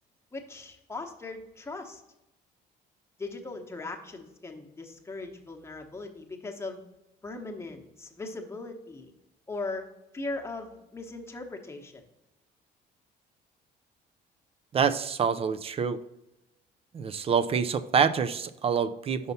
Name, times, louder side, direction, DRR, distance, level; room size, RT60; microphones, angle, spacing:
voice 1, 0.3-2.0 3.2-6.8 7.2-9.1 9.5-9.9 10.1-12.0, left 3 dB, 15° left, 2 dB, 1.0 m, -39 dB
voice 2, 14.7-16.0 16.9-19.3, right 6 dB, 35° right, 12 dB, 0.4 m, -26 dB
5.5 x 5.5 x 4.1 m, 0.90 s
cardioid pair, 110°, 17 cm